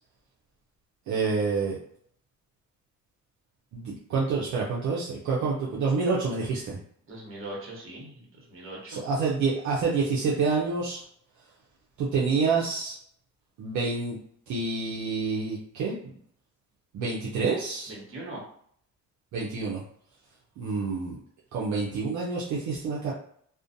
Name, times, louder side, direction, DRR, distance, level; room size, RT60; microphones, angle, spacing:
voice 1, 1.1-1.8 3.7-6.8 8.9-11.0 12.0-13.0 13.6-14.2 14.5-16.0 16.9-17.9 19.3-19.8 20.6-21.2 21.5-23.1, right 4 dB, 70° right, -5 dB, 0.6 m, -28 dB
voice 2, 7.1-9.0 17.9-18.4, right 1 dB, 45° right, -2 dB, 1.1 m, -40 dB
2.4 x 2.1 x 2.6 m, 0.63 s
cardioid pair, 90°, 30 cm